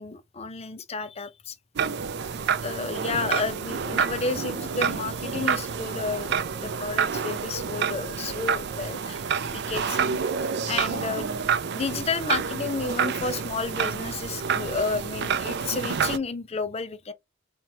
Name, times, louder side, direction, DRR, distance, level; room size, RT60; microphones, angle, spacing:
voice 1, 0.0-1.5 2.6-9.2 9.5-10.2 10.7-11.5 11.7-17.1, left 4 dB, 30° left, 0.6 m, -31 dB
sound 1, 1.8-16.2, right 6 dB, 55° right, 0.4 m, -28 dB
sound 2, 2.0-13.2, right 3 dB, 85° right, 1.2 m, -46 dB
4.3 x 3.1 x 2.8 m
head